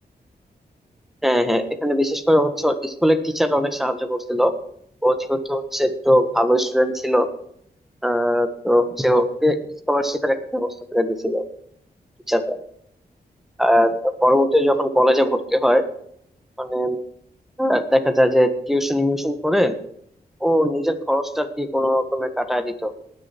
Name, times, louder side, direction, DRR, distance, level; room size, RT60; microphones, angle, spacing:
voice 1, 1.2-4.5 5.0-7.3 8.0-9.6 9.9-11.4 12.3-12.6 13.6-15.8 16.6-17.0 17.6-19.7 20.4-22.9, equal, ahead, 9 dB, 1.5 m, -20 dB
19.5 x 6.8 x 4.6 m, 0.68 s
cardioid pair, 80°, 17 cm